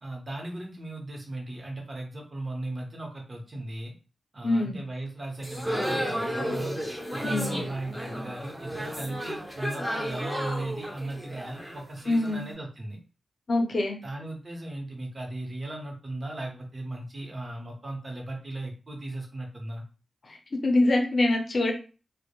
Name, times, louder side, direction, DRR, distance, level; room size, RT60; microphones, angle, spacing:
voice 1, 0.0-3.9 4.3-6.8 7.1-13.0 14.0-19.8, right 2 dB, 40° right, 0 dB, 0.8 m, -37 dB
voice 2, 4.4-4.8 7.2-7.6 12.1-12.4 13.5-14.0 20.2-20.4 20.6-21.7, left 2 dB, 55° left, 1 dB, 0.6 m, -24 dB
sound 1, 5.4-12.4, equal, 5° right, 0.6 m, -33 dB
2.1 x 2.1 x 2.9 m, 0.34 s
wide cardioid pair, 85°, 0 cm